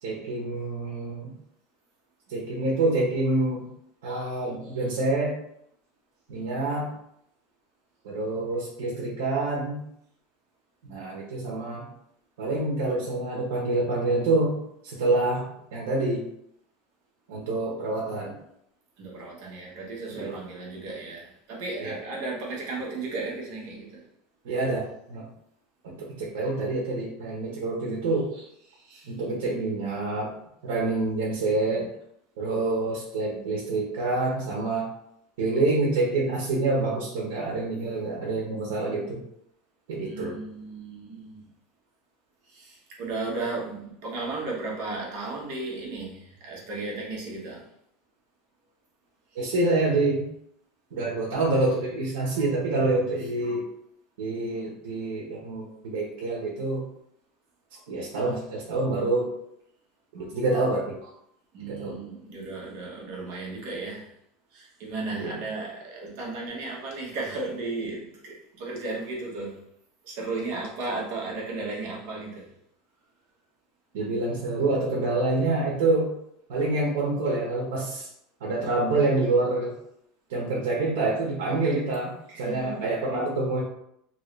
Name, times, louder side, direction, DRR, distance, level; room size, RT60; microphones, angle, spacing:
voice 1, 0.0-1.3 2.3-3.7 4.0-5.3 6.3-6.9 8.0-9.8 10.8-11.9 12.4-16.3 17.3-18.4 20.2-20.4 21.8-22.0 22.9-23.0 24.4-25.3 25.8-28.4 29.0-30.3 30.6-31.9 32.4-34.9 35.4-39.2 39.9-40.4 49.3-50.2 50.9-53.6 54.2-56.9 57.7-59.4 60.1-61.1 61.7-62.0 65.1-65.3 73.9-76.1 76.5-78.1 78.4-79.7 80.3-83.6, right 2 dB, 80° right, -3 dB, 1.0 m, -27 dB
voice 2, 19.0-24.0 28.7-29.1 40.0-41.4 42.5-47.7 49.4-49.5 61.5-64.1 64.5-69.6 70.0-72.5 82.3-82.8, right 3 dB, 55° right, -2 dB, 1.1 m, -35 dB
3.0 x 2.7 x 3.2 m, 0.73 s
supercardioid pair, 175°, 0 cm